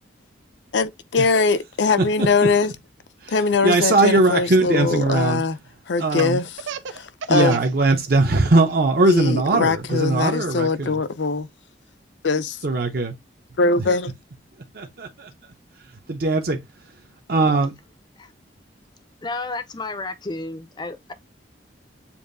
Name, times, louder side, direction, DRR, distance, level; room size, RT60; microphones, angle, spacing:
voice 1, 0.7-2.7 3.3-5.6 5.9-6.5 6.9-7.6 9.0-11.5 12.2-12.6 13.6-14.1, left 4 dB, 70° left, 0.5 m, -21 dB
voice 2, 3.6-5.4 6.0-6.4 7.3-11.0 12.6-13.1 13.8-13.9 14.7-15.3 16.1-16.6 17.3-17.7, right 2 dB, 55° right, 0.8 m, -20 dB
Laughter, 6.0-7.7 8.1-8.7 9.1-10.8, right 7 dB, 80° right, 0.4 m, -34 dB
voice 3, 19.2-21.1, left 3 dB, 25° left, 0.5 m, -32 dB
7.1 x 2.6 x 2.6 m
head